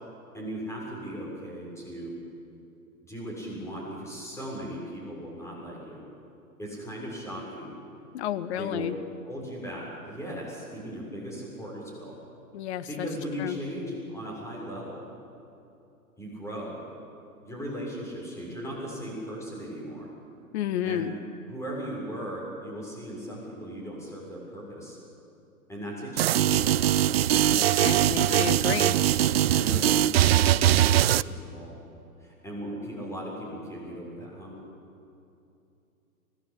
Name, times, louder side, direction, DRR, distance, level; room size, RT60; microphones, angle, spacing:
voice 1, 0.3-2.1 3.0-6.0 6.6-7.7 8.5-8.9 9.3-12.2 12.9-15.0 16.2-16.8 17.4-20.1 20.8-21.1 21.5-25.0 25.7-27.0 27.9-28.8 29.5-31.8 32.2-34.5, equal, 5° left, -4 dB, 7.0 m, -38 dB
voice 2, 8.1-8.9 12.5-13.1 13.4-13.6 20.5-21.1 27.6-29.0, left 11 dB, 45° left, 12 dB, 1.4 m, -31 dB
sound 1, 26.2-31.2, right 12 dB, 45° right, 0.5 m, -21 dB
25.5 x 19.5 x 8.7 m, 2.7 s
hypercardioid pair, 120°, 46 cm